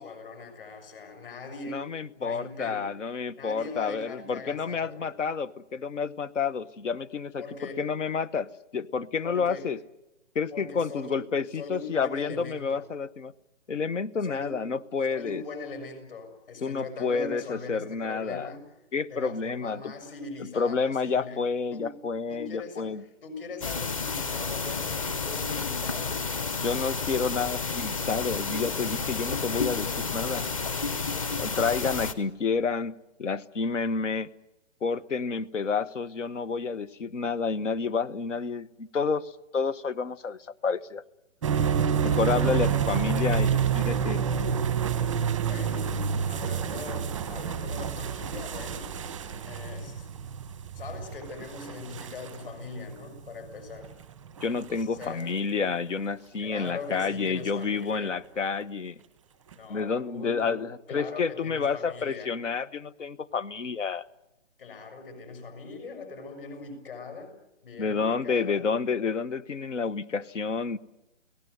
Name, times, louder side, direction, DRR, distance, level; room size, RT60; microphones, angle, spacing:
voice 1, 0.0-1.9 2.2-2.9 3.4-5.1 7.4-7.9 9.2-9.7 10.5-11.2 11.5-12.9 14.2-14.7 15.1-18.6 19.1-21.4 21.7-22.0 22.3-22.9 23.2-26.3 45.5-46.0 46.2-49.0 49.5-50.1 50.7-53.9 54.8-55.3 56.4-58.2 59.5-62.4 64.6-67.3 67.6-68.7, left 4 dB, 45° left, 6.7 m, -41 dB
voice 2, 1.7-7.4 7.8-9.8 10.3-13.3 13.7-15.4 16.6-18.5 18.9-19.9 20.5-23.0 26.6-30.5 31.4-32.9 33.2-34.3 34.8-41.0 42.0-44.2 54.4-59.0 59.7-64.1 67.8-70.8, left 5 dB, 75° left, 1.2 m, -29 dB
sound 1, 23.6-32.1, left 4 dB, 25° left, 1.1 m, -31 dB
sound 2, 41.4-55.1 56.0-56.1 56.6-57.3 57.6-57.7 59.5-59.6, right 7 dB, ahead, 0.8 m, -29 dB
29.5 x 18.5 x 8.1 m
hypercardioid pair, 170°, 37 cm